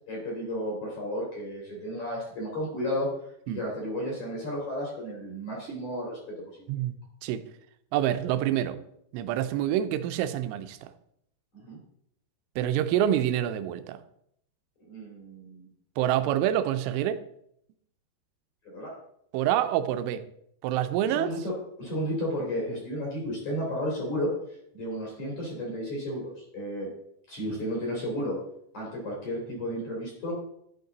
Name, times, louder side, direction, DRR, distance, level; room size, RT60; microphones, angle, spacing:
voice 1, 0.1-3.1 3.5-6.7 11.5-11.8 14.9-15.7 18.6-18.9 21.1-21.5 21.8-26.9 27.3-28.4 28.7-30.3, equal, 40° left, -4 dB, 3.5 m, -33 dB
voice 2, 7.9-8.8 9.1-10.9 12.6-14.0 16.0-17.2 19.3-20.2 20.6-21.3 22.7-22.8, right 11 dB, 90° right, 11 dB, 3.1 m, -27 dB
12.0 x 5.3 x 3.9 m, 0.73 s
omnidirectional pair, 5.5 m